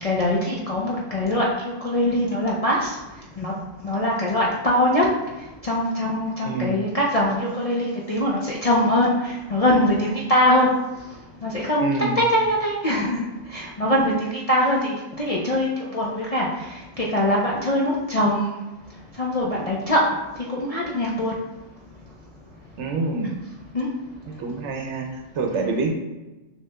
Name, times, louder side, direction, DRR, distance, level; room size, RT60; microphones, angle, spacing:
voice 1, 0.0-3.0 3.4-3.5 3.8-5.1 5.6-10.7 11.4-13.2 13.5-18.6 19.2-20.1 20.5-21.3 23.7-23.9 25.6-25.7, left 1 dB, 50° left, -4 dB, 0.4 m, -22 dB
voice 2, 6.4-6.8 11.8-12.2 22.8-23.4 24.3-25.9, right 3 dB, 75° right, 3 dB, 0.9 m, -27 dB
6.3 x 2.9 x 2.2 m, 1.1 s
omnidirectional pair, 1.3 m